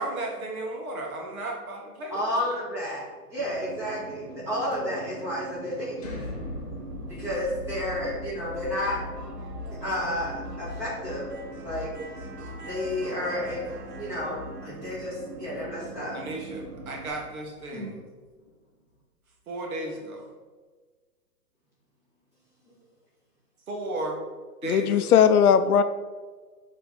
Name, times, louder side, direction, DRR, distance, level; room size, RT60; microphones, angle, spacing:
voice 1, 0.0-2.2 16.1-18.0 19.5-20.3 23.7-24.2 24.6-25.2, right 2 dB, 60° right, 0 dB, 1.9 m, -34 dB
voice 2, 2.1-3.0 3.3-6.2 7.1-9.0 9.8-11.3 11.6-11.9 12.7-13.6 14.0-14.4 14.6-16.2 17.7-17.9, left 1 dB, 5° right, -10 dB, 1.9 m, -31 dB
sound 1, 3.4-17.1, right 3 dB, 80° right, 1.2 m, -42 dB
sound 2, 6.0-17.8, left 2 dB, 25° left, 0.6 m, -41 dB
voice 3, 24.7-25.8, left 8 dB, 70° left, 11 dB, 0.5 m, -18 dB
7.4 x 3.8 x 4.0 m, 1.4 s
hypercardioid pair, 165°, 47 cm